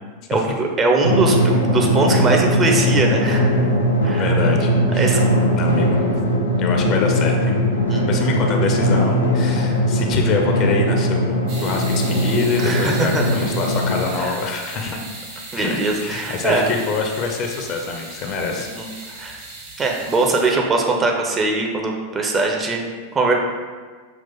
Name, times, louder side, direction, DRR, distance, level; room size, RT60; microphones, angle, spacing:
voice 1, 0.3-3.5 4.0-4.4 5.0-5.2 7.9-8.0 12.6-13.3 14.2-14.3 15.5-16.6 18.8-19.4 19.8-22.8 23.1-23.3, right 3 dB, 20° right, 1 dB, 0.6 m, -21 dB
Drum, 1.0-14.0, equal, 80° left, 0.6 m, -19 dB
voice 2, 4.2-5.2 5.6-6.1 6.6-7.8 8.1-15.1 15.5-18.7, left 4 dB, 35° left, 2 dB, 0.6 m, -25 dB
sound 1, 11.5-20.5, right 2 dB, 50° right, 1.1 m, -37 dB
5.7 x 2.4 x 3.8 m, 1.5 s
figure-of-eight pair, 90°, 0 cm